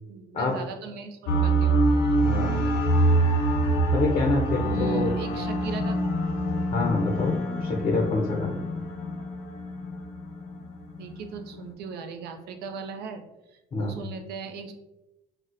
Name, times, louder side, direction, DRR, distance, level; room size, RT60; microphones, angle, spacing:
voice 1, 0.0-1.9 4.6-6.4 11.0-13.2 13.5-14.7, right 5 dB, 75° right, 6 dB, 0.5 m, -38 dB
sound 1, 1.3-11.7, right 1 dB, 85° left, 0.5 m, -25 dB
voice 2, 2.2-2.7 3.9-5.1 6.7-8.6 13.7-14.0, left 3 dB, 30° left, -1 dB, 0.5 m, -26 dB
4.0 x 2.1 x 2.5 m, 0.96 s
cardioid pair, 110°, 17 cm